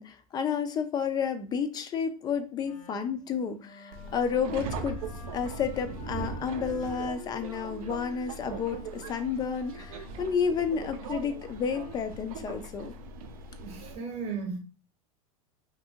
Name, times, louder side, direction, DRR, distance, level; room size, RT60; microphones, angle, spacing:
voice 1, 0.0-5.0 5.3-12.9, left 6 dB, 20° left, 0.3 m, -31 dB
Wind instrument woodwind instrument, 2.6-12.1, left 7 dB, 75° left, 0.8 m, -49 dB
Subway metro underground, 3.9-13.9, right 3 dB, 70° right, 0.5 m, -40 dB
voice 2, 13.6-14.6, right 5 dB, 35° right, 0.8 m, -35 dB
2.6 x 2.5 x 2.7 m
hypercardioid pair, 115°, 19 cm